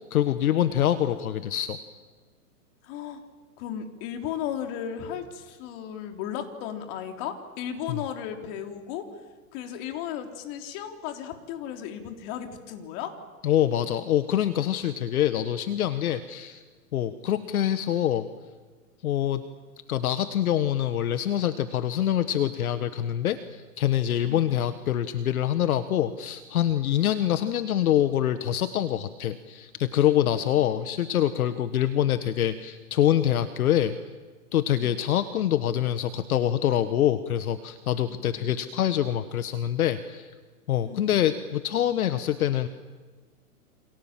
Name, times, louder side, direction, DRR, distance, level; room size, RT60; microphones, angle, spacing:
voice 1, 0.1-1.8 7.9-8.0 13.4-16.6 16.9-18.3 19.0-19.4 19.9-33.9 34.5-40.3 40.7-42.7, left 11 dB, 70° left, 11 dB, 1.5 m, -25 dB
voice 2, 2.8-3.2 3.6-9.1 9.5-13.1 24.2-24.5 30.5-31.0 34.7-35.0 38.1-38.7 40.8-41.2, left 9 dB, 40° left, 5 dB, 3.6 m, -36 dB
28.5 x 27.0 x 7.5 m, 1.4 s
hypercardioid pair, 135°, 45 cm